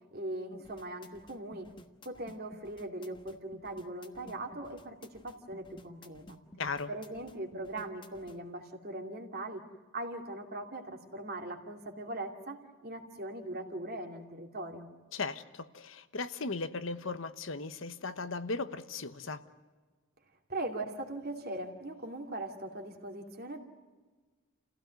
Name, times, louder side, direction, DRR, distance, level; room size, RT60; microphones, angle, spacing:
voice 1, 0.1-1.7 2.0-6.4 6.9-9.6 9.9-14.9 20.5-23.6, right 1 dB, 45° right, 3 dB, 2.7 m, -40 dB
sound 1, 0.5-8.4, left 1 dB, 20° left, 1.3 m, -54 dB
voice 2, 6.6-6.9 15.1-19.4, left 3 dB, 65° left, 11 dB, 1.1 m, -37 dB
29.5 x 16.0 x 9.4 m, 1.4 s
head